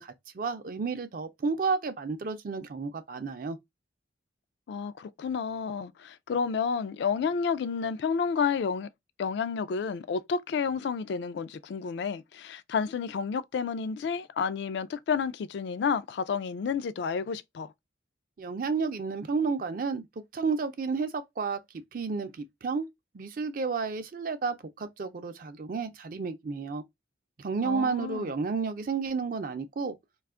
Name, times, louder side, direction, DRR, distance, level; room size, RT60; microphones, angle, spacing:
voice 1, 0.0-3.6 18.4-20.0 20.3-21.6 21.9-22.9 23.1-26.8 27.4-30.0, right 4 dB, 45° right, 0.4 m, -31 dB
voice 2, 4.7-8.9 9.2-17.7 27.6-28.3, left 6 dB, 65° left, 0.3 m, -30 dB
2.4 x 2.3 x 3.5 m
head